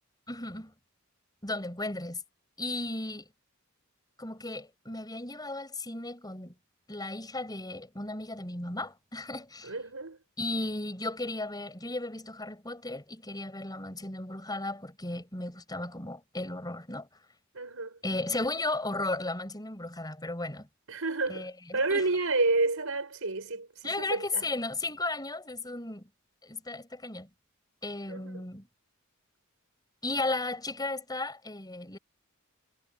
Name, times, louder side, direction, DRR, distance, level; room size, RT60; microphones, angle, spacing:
voice 1, 0.3-0.7 1.4-2.2 2.6-3.3 4.2-6.5 6.9-9.7 10.4-17.1 18.0-20.7 21.3-22.1 23.8-26.1 26.4-27.3 27.8-28.7 30.0-32.0, left 2 dB, 20° left, 5.6 m, -35 dB
voice 2, 9.6-10.2 17.5-18.0 20.9-24.4 28.1-28.4, right 3 dB, 70° right, 5.0 m, -30 dB
head